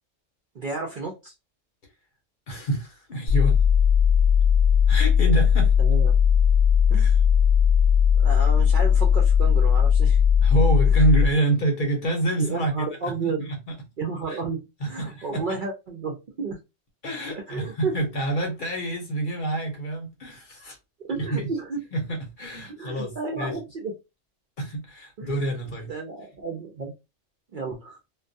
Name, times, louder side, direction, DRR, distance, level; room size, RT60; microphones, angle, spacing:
voice 1, 0.5-1.3 5.8-6.1 6.9-7.2 8.1-10.2 12.4-13.5 14.0-16.6 17.3-17.9 21.1-21.8 22.7-23.9 25.2-25.3 25.9-26.9 27.5-28.0, right 4 dB, 60° right, 0.5 m, -32 dB
voice 2, 2.5-3.6 4.9-5.8 7.0-7.1 10.4-13.8 14.3-14.4 14.8-15.6 17.0-20.8 21.1-21.5 21.9-23.6 24.6-25.9, right 2 dB, 50° left, 0.8 m, -27 dB
sound 1, 3.3-11.3, left 7 dB, 85° left, 1.0 m, -18 dB
2.2 x 2.2 x 2.6 m
omnidirectional pair, 1.3 m